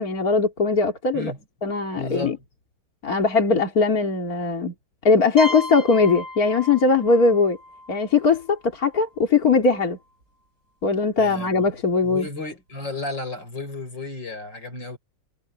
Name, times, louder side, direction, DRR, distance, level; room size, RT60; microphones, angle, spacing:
voice 1, 0.0-1.3 1.6-2.4 3.0-4.7 5.0-7.6 7.9-10.0 10.8-12.3, left 4 dB, 50° left, 3.2 m, -20 dB
voice 2, 1.1-1.4 1.9-2.4 11.2-11.7 12.0-15.0, left 2 dB, 70° left, 7.5 m, -33 dB
sound 1, 5.4-9.0, left 1 dB, 40° right, 4.0 m, -35 dB
omnidirectional pair, 2.0 m